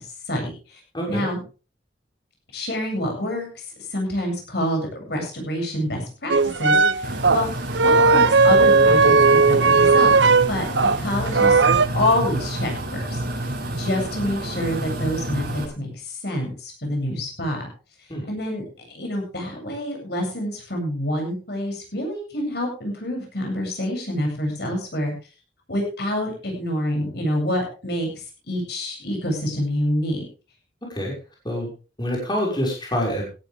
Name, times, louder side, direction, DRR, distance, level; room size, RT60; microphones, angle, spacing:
voice 1, 0.0-0.8 1.1-1.4 2.5-6.3 6.6-7.5 7.8-9.1 9.5-10.1 10.5-10.7 11.0-11.6 11.9-17.7 18.3-18.6 18.9-25.1 25.7-28.1 28.5-30.2, left 1 dB, 65° left, 2 dB, 7.8 m, -27 dB
voice 2, 0.9-1.2 18.1-18.3 30.9-31.1 31.4-31.7 32.0-33.2, equal, 25° left, -2 dB, 6.0 m, -26 dB
sound 1, 6.3-11.0 11.3-11.9, right 4 dB, 85° right, 0.9 m, -16 dB
sound 2, 7.0-15.6, right 1 dB, 55° right, 6.6 m, -29 dB
17.5 x 13.5 x 3.6 m, 0.34 s
head